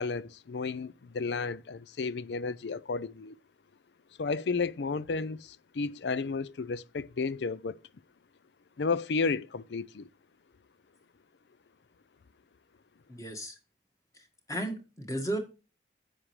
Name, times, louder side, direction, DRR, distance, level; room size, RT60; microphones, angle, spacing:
voice 1, 0.0-3.3 4.2-7.8 8.8-10.1, left 4 dB, 75° left, 0.5 m, -32 dB
voice 2, 13.1-13.6 14.1-15.4, right 1 dB, 20° left, 1.6 m, -35 dB
10.0 x 7.3 x 3.2 m
head